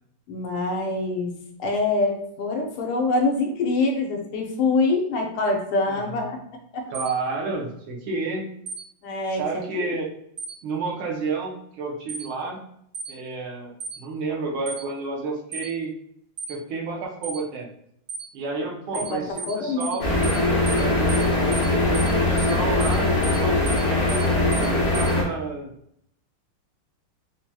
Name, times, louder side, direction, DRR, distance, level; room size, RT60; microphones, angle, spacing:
voice 1, 0.3-1.3 1.6-6.4 9.0-9.5 9.8-9.9 18.9-20.2, left 3 dB, 85° left, 2 dB, 1.7 m, -25 dB
voice 2, 5.9-6.2 6.9-8.5 9.3-10.1 10.6-12.6 13.1-13.7 14.0-15.9 16.5-17.7 18.3-20.1 20.8-24.5 24.9-25.7, right 4 dB, 75° right, -1 dB, 1.6 m, -31 dB
sound 1, 6.9-7.1 8.7-8.8 10.4-10.5 12.1-12.3 12.9-13.1 13.8-14.0 14.7-14.8 15.5-15.7 16.4-16.5 17.2-17.4 18.1-18.3 18.9-19.1 19.4-19.5 19.8-20.0 20.2-20.4 20.7-20.8 21.1-21.3 21.5-21.7 21.9-22.1 22.4-22.5 22.8-23.0 23.2-23.4 23.7-23.8 24.1-24.3 24.5-24.7 24.9-25.1, right 5 dB, 50° right, 1.0 m, -34 dB
sound 2, 20.0-25.2, left 2 dB, 60° left, 1.5 m, -21 dB
4.6 x 2.8 x 2.2 m, 0.70 s
omnidirectional pair, 2.3 m